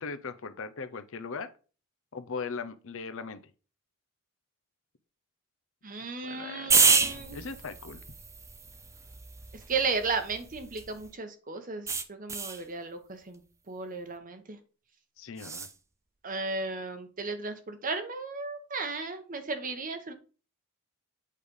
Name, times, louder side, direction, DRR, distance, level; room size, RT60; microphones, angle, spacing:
voice 1, 0.0-1.5 2.1-3.4 6.2-6.8 7.3-8.0 15.2-15.7, left 4 dB, 60° left, 0.7 m, -39 dB
voice 2, 5.8-7.4 9.7-13.4 13.7-14.6 16.2-20.1, right 4 dB, 35° right, 1.0 m, -35 dB
sound 1, 6.7-11.1 11.9-12.6 15.4-15.7, right 4 dB, 15° right, 0.4 m, -29 dB
8.4 x 3.3 x 5.3 m
head